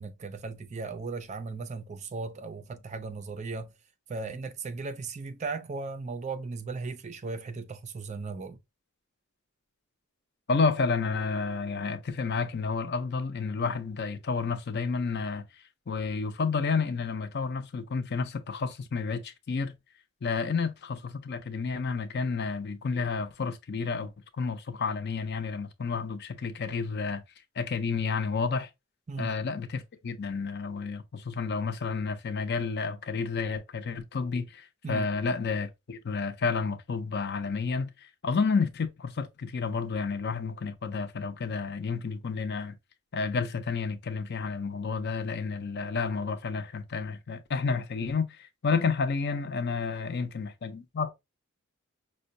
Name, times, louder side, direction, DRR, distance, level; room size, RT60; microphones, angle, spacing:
voice 1, 0.0-3.7 4.1-8.6 29.1-29.3 34.8-35.1, right 4 dB, 30° right, 0.4 m, -36 dB
voice 2, 10.5-19.7 20.2-27.2 27.6-28.7 29.2-42.7 43.1-51.1, left 4 dB, 50° left, 0.5 m, -30 dB
5.4 x 2.1 x 2.6 m
head